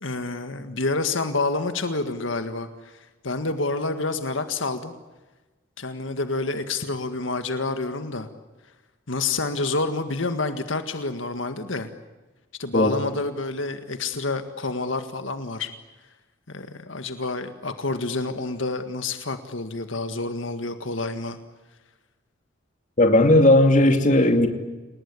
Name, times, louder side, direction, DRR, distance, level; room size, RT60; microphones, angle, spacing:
voice 1, 0.0-4.9 5.8-8.3 9.1-11.9 12.6-15.7 16.5-21.4, left 3 dB, 80° left, 1.8 m, -28 dB
voice 2, 23.0-24.5, left 1 dB, 40° left, 2.7 m, -16 dB
29.5 x 19.0 x 9.7 m
head